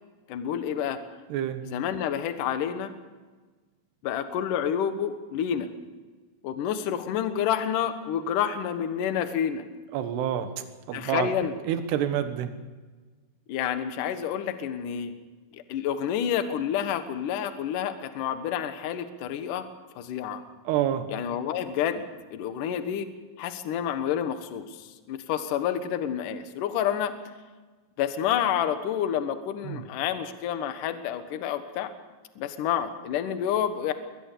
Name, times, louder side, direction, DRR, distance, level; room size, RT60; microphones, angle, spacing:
voice 1, 0.3-1.0 1.6-2.9 4.0-5.7 6.4-9.6 10.9-11.6 13.5-15.1 15.5-19.6 20.0-20.4 21.1-22.1 22.3-23.1 23.4-27.1 28.0-31.9 32.4-33.9, left 9 dB, 65° left, 9 dB, 2.4 m, -29 dB
voice 2, 1.3-1.6 9.9-10.5 10.9-11.3 11.7-12.5 20.7-21.0 29.6-29.8, right 10 dB, 75° right, 9 dB, 3.3 m, -27 dB
22.0 x 19.5 x 6.8 m, 1.3 s
omnidirectional pair, 5.1 m